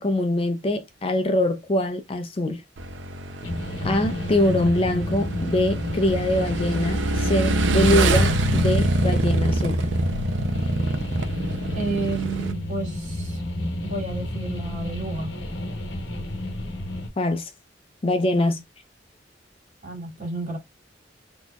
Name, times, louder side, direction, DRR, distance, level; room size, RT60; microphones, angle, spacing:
voice 1, 0.0-2.6 3.8-9.9 17.2-17.5 18.0-18.6, left 1 dB, 30° left, 0.5 m, -23 dB
Motorcycle / Engine, 2.8-12.5, right 2 dB, 80° right, 0.6 m, -25 dB
sound 1, 3.4-17.1, left 1 dB, 70° left, 0.8 m, -31 dB
voice 2, 11.7-13.4 13.8-15.3 18.3-18.5 19.8-20.6, right 3 dB, 45° right, 2.1 m, -31 dB
4.1 x 2.8 x 2.3 m
head